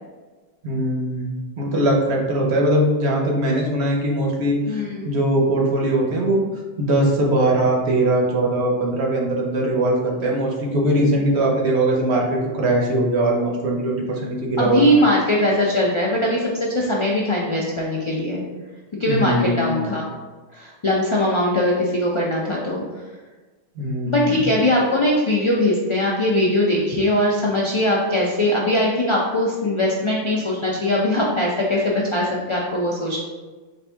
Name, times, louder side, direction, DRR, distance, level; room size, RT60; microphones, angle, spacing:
voice 1, 0.6-4.8 5.0-6.5 6.8-15.0 19.1-19.8 23.8-24.5, right 1 dB, 65° right, -1 dB, 1.0 m, -21 dB
voice 2, 4.7-5.1 14.6-18.4 19.0-20.0 20.5-22.8 24.1-33.2, left 1 dB, 55° left, -4 dB, 0.3 m, -21 dB
4.3 x 2.6 x 3.3 m, 1.3 s
omnidirectional pair, 1.3 m